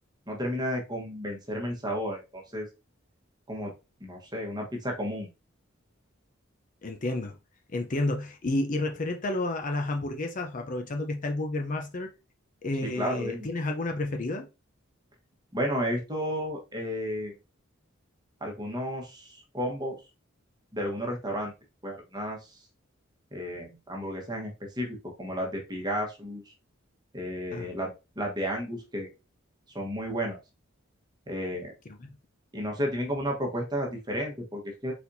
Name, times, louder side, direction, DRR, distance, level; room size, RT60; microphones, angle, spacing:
voice 1, 0.3-2.7 3.5-3.7 4.0-5.3 12.8-13.5 15.5-17.3 18.4-20.0 20.7-21.5 21.8-22.6 23.3-26.5 27.1-29.1 29.7-30.4 31.3-31.7 32.5-34.9, equal, 20° right, 1.2 m, -32 dB
voice 2, 6.8-7.4 7.7-12.1 12.6-14.5 27.5-27.7 32.0-32.1, left 2 dB, 40° left, 0.6 m, -30 dB
4.3 x 4.2 x 2.6 m
head